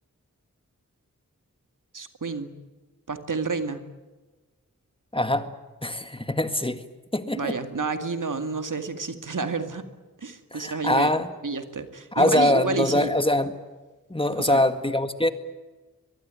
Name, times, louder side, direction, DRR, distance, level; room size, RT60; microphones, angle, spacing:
voice 1, 1.9-2.5 3.1-3.8 7.3-9.9 10.2-11.1 11.4-13.1 14.4-14.6, right 4 dB, 75° right, 8 dB, 2.3 m, -30 dB
voice 2, 5.1-5.5 5.8-6.8 7.1-7.6 10.5-11.3 12.1-13.5 14.1-15.3, left 1 dB, 15° left, 9 dB, 1.9 m, -23 dB
23.5 x 23.0 x 9.0 m, 1.2 s
wide cardioid pair, 75°, 32 cm